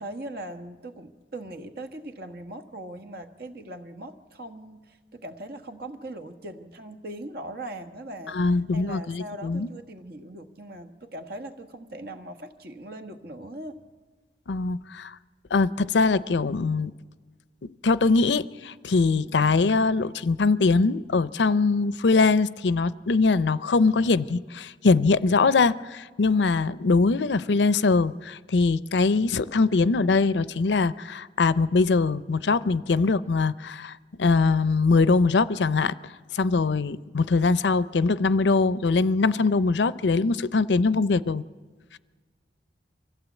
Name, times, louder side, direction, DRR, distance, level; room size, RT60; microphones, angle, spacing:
voice 1, 0.0-8.4 8.7-13.8, right 1 dB, 60° right, 1.5 m, -40 dB
voice 2, 8.3-9.7 14.5-15.1 15.5-16.9 17.8-35.9 36.3-41.4, left 4 dB, 80° left, 0.6 m, -22 dB
24.5 x 15.0 x 8.2 m
head